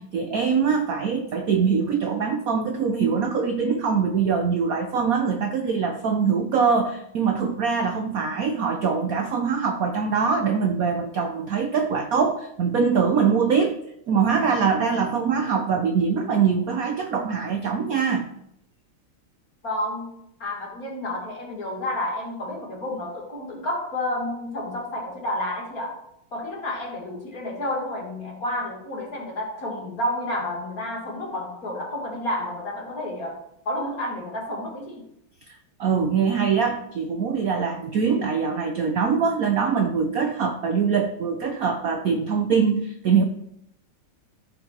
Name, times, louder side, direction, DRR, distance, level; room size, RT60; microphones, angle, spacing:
voice 1, 0.0-13.8 14.1-18.3 35.5-43.2, right 6 dB, 65° right, 5 dB, 0.9 m, -23 dB
voice 2, 19.6-26.0 26.3-35.0, left 1 dB, 45° left, -1 dB, 2.6 m, -30 dB
14.5 x 4.9 x 4.4 m, 0.76 s
omnidirectional pair, 2.3 m